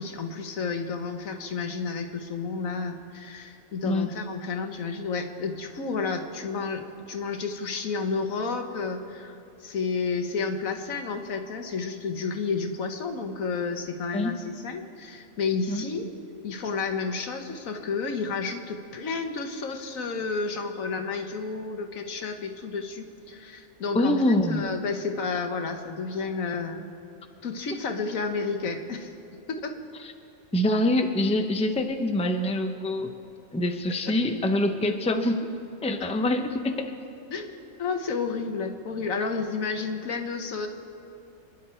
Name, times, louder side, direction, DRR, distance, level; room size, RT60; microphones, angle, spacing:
voice 1, 0.0-16.1 16.4-26.9 27.4-29.1 29.5-29.7 34.0-34.1 37.3-40.7, left 4 dB, 90° left, 5 dB, 1.5 m, -31 dB
voice 2, 23.9-24.7 30.0-30.1 30.5-33.1 33.5-35.5 35.8-36.9, left 1 dB, 5° left, 5 dB, 0.6 m, -25 dB
26.5 x 10.5 x 4.5 m, 2.6 s
omnidirectional pair, 1.4 m